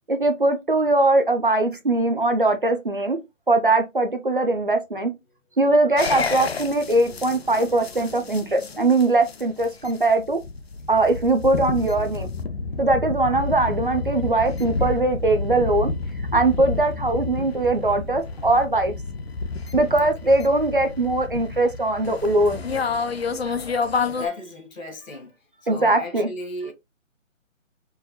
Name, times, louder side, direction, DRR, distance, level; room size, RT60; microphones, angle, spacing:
voice 1, 0.1-3.2 3.5-5.1 5.6-10.4 10.9-12.3 12.8-15.9 16.3-18.9 19.7-22.6 25.7-26.3, right 2 dB, 45° right, 0.5 m, -21 dB
sound 1, 6.0-24.3, left 4 dB, 55° left, 0.4 m, -30 dB
voice 2, 20.0-20.3 24.0-25.3 25.7-26.7, left 2 dB, 90° left, 1.6 m, -35 dB
4.5 x 2.2 x 2.7 m
hypercardioid pair, 175°, 39 cm